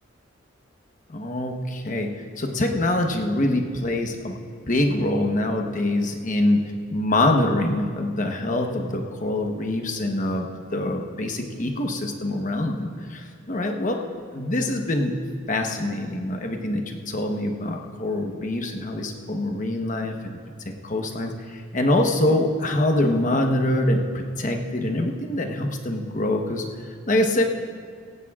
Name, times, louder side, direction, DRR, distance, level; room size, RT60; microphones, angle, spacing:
voice 1, 1.1-4.4 4.7-6.6 6.9-14.0 14.3-15.1 15.5-20.4 20.6-27.4, left 1 dB, 40° left, 3 dB, 1.0 m, -24 dB
16.0 x 16.0 x 2.4 m, 2.1 s
head